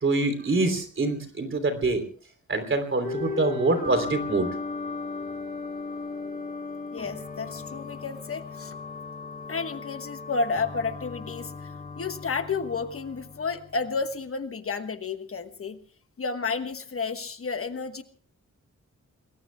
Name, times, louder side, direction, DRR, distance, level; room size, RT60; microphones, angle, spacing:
voice 1, 0.0-2.0 2.5-4.5, right 2 dB, 40° right, 7 dB, 3.3 m, -25 dB
sound 1, 3.0-14.1, left 4 dB, 30° left, 2.3 m, -37 dB
voice 2, 6.9-8.8 9.5-15.8 16.2-18.0, left 4 dB, 45° left, 8 dB, 1.3 m, -31 dB
28.0 x 21.0 x 2.3 m, 0.43 s
wide cardioid pair, 165°, 30 cm